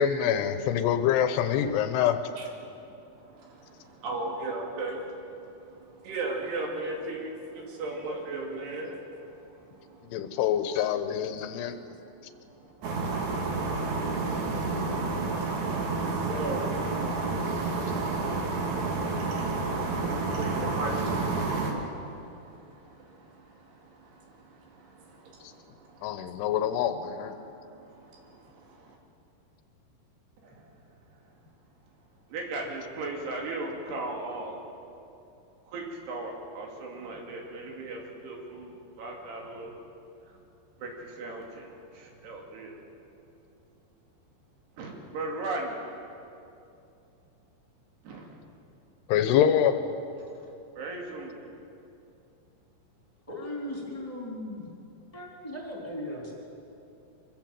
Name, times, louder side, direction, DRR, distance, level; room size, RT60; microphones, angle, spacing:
voice 1, 0.0-2.2 10.1-11.7 26.0-27.4 49.1-49.8, left 9 dB, 80° left, 9 dB, 2.9 m, -25 dB
voice 2, 2.4-10.4 11.5-26.6 27.4-29.0 30.4-30.8 31.1-31.2 32.3-34.6 35.7-39.8 40.2-40.4 40.8-42.8 44.8-45.8 48.0-48.4 50.3-50.5 50.8-51.4, right 2 dB, 75° right, 0 dB, 4.5 m, -39 dB
sound 1, 12.8-21.7, right 3 dB, 55° right, 2.9 m, -29 dB
voice 3, 53.3-54.7 55.1-56.3, left 1 dB, 10° left, -3 dB, 3.6 m, -37 dB
25.0 x 15.0 x 7.7 m, 2.7 s
omnidirectional pair, 4.8 m